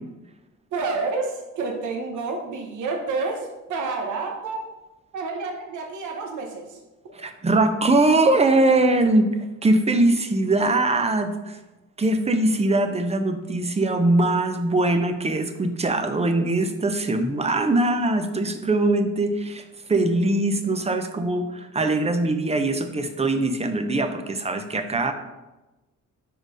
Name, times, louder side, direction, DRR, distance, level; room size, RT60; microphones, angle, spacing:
voice 1, 0.7-4.7 5.1-6.8, right 3 dB, 75° right, 2 dB, 1.0 m, -29 dB
voice 2, 7.1-9.3 9.6-11.6 12.0-25.1, right 2 dB, 20° right, 7 dB, 0.7 m, -22 dB
4.9 x 4.4 x 5.1 m, 1.0 s
cardioid pair, 90°, 30 cm